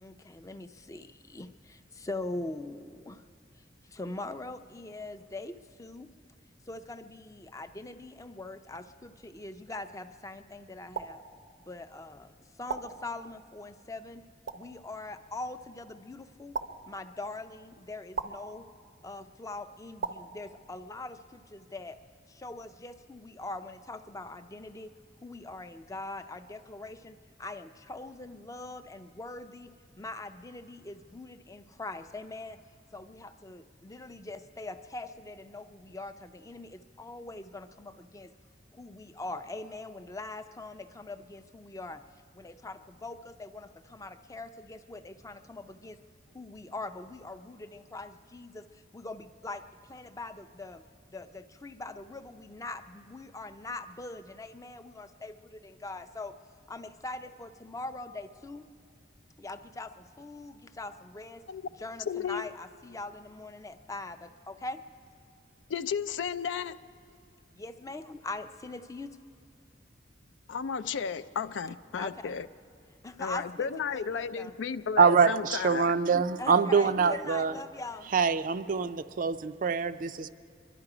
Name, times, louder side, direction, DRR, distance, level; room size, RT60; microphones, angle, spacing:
voice 1, 0.0-3.2 3.9-6.1 6.7-11.2 11.6-14.2 14.5-16.6 16.9-18.7 19.0-22.0 22.3-24.9 25.2-32.6 32.9-38.3 38.7-42.0 42.3-46.0 46.3-48.7 48.9-49.6 49.9-50.8 51.1-56.4 56.7-58.6 59.4-61.4 61.8-64.8 67.5-69.2 72.0-72.3 73.0-73.7 73.9-74.5 76.4-78.1, left 2 dB, 15° left, 10 dB, 0.5 m, -42 dB
sound 1, 10.9-11.1 12.7-12.8 14.5-14.6 16.5-16.7 18.1-18.3 20.0-20.2, right 5 dB, 90° right, 0.7 m, -33 dB
voice 2, 62.1-62.4 65.7-66.8 70.5-72.5 73.2-75.9, left 6 dB, 75° left, 13 dB, 0.4 m, -33 dB
voice 3, 75.0-77.5 78.1-80.3, right 5 dB, 45° right, 11 dB, 0.4 m, -25 dB
25.0 x 11.5 x 4.9 m, 2.4 s
head